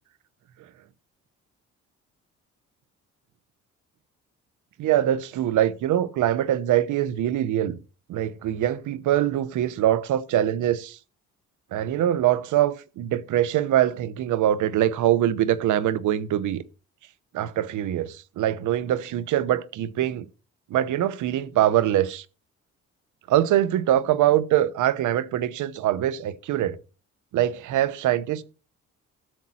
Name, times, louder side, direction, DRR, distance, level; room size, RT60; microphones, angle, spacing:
voice 1, 4.8-7.8 8.1-11.0 11.7-16.6 17.3-20.3 20.7-22.2 23.3-26.8 27.3-28.4, right 12 dB, 80° right, 1.0 m, -23 dB
13.0 x 7.4 x 4.3 m
cardioid pair, 90°, 30 cm